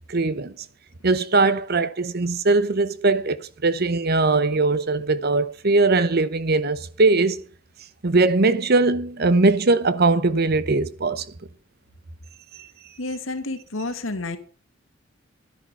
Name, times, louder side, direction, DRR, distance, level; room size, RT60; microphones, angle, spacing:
voice 1, 0.1-0.5 1.0-7.4 8.0-11.3 12.6-12.7, right 3 dB, 50° right, 0.9 m, -20 dB
voice 2, 13.0-14.4, left 2 dB, 85° left, 1.9 m, -30 dB
12.0 x 10.5 x 5.7 m
head